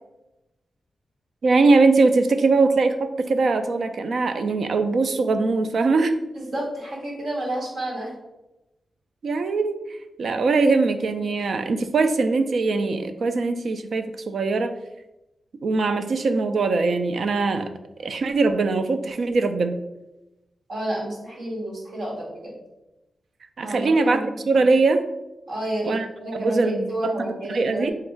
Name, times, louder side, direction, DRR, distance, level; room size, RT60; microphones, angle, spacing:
voice 1, 1.4-6.2 9.2-9.8 10.2-14.8 15.6-17.7 18.0-19.7 23.6-25.0 25.8-26.1 26.3-27.9, right 3 dB, 65° right, 8 dB, 0.3 m, -21 dB
voice 2, 6.3-8.1 20.7-22.6 23.6-24.5 25.5-27.9, right 1 dB, 85° right, -4 dB, 1.4 m, -30 dB
3.4 x 2.3 x 4.3 m, 0.97 s
wide cardioid pair, 115°, 0 cm